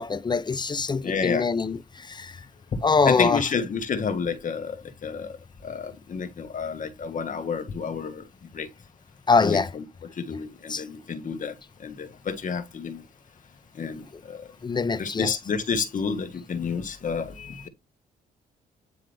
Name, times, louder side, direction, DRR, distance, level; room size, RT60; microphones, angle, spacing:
voice 1, 0.0-2.3 2.8-3.4 9.3-9.7 10.7-10.8 14.6-15.3, left 4 dB, 25° left, 0.7 m, -24 dB
voice 2, 1.0-1.4 3.0-5.4 5.6-8.2 8.5-8.7 9.4-9.8 10.2-11.5 11.8-13.0 13.7-14.5 15.0-17.7, left 6 dB, 50° left, 1.6 m, -30 dB
9.4 x 3.5 x 3.5 m
cardioid pair, 80°, 17 cm